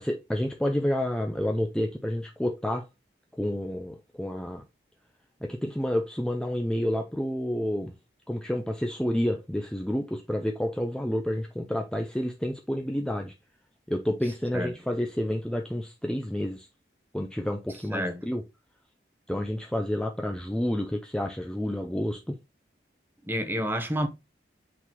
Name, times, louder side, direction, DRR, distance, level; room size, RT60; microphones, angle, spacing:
voice 1, 0.0-2.8 3.4-4.6 5.4-7.9 8.3-13.3 13.9-16.7 17.1-18.4 19.3-22.3, left 1 dB, 5° left, 0.4 m, -29 dB
voice 2, 17.9-18.3 23.2-24.1, equal, 10° right, 0.8 m, -29 dB
8.4 x 3.9 x 2.9 m
head